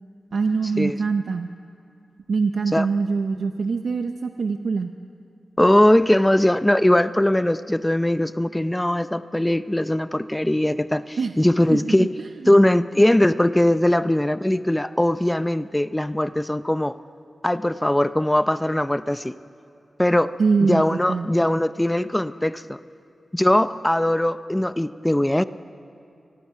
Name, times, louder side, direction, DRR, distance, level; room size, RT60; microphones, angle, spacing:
voice 1, 0.3-1.5 2.3-4.9 11.2-11.3 11.7-12.5 20.4-21.3, right 4 dB, 80° right, 7 dB, 0.7 m, -24 dB
voice 2, 5.6-12.1 12.5-17.0 17.4-19.3 20.0-20.3 20.7-22.8 23.3-25.4, left 1 dB, 15° left, 13 dB, 0.5 m, -20 dB
24.0 x 20.0 x 5.6 m, 2.4 s
cardioid pair, 55°, 0 cm